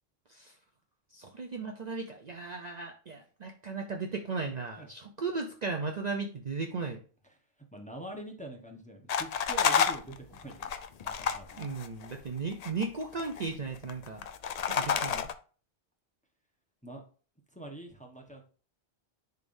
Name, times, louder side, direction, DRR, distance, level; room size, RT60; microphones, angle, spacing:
voice 1, 1.1-7.0 11.6-14.2 14.7-15.3, right 4 dB, 45° right, 2 dB, 0.7 m, -36 dB
voice 2, 7.7-10.7 11.0-11.7 16.8-17.0 17.5-18.4, right 1 dB, 5° left, 1 dB, 1.1 m, -44 dB
sound 1, 9.1-12.2 12.5-13.5 13.8-15.3, left 7 dB, 50° left, 0.5 m, -29 dB
10.5 x 3.5 x 2.6 m, 0.39 s
omnidirectional pair, 1.1 m